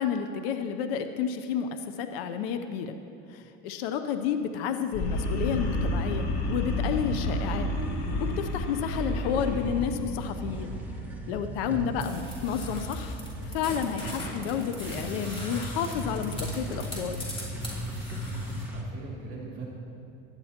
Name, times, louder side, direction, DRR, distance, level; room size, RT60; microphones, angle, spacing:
voice 1, 0.0-3.0 3.3-7.7 8.2-10.8 11.3-13.2 13.5-17.2, left 7 dB, 85° left, 8 dB, 0.7 m, -31 dB
sound 1, 4.9-11.2, left 1 dB, 65° left, 1.8 m, -30 dB
sound 2, 7.7-8.5 8.8-18.8, right 1 dB, 5° right, 1.4 m, -38 dB
voice 2, 11.7-12.1 14.0-14.2 18.7-19.7, right 5 dB, 50° right, -3 dB, 2.5 m, -39 dB
sound 3, 12.0-18.6, left 1 dB, 20° left, 3.2 m, -42 dB
17.0 x 11.5 x 2.9 m, 2.6 s
supercardioid pair, 110°, 29 cm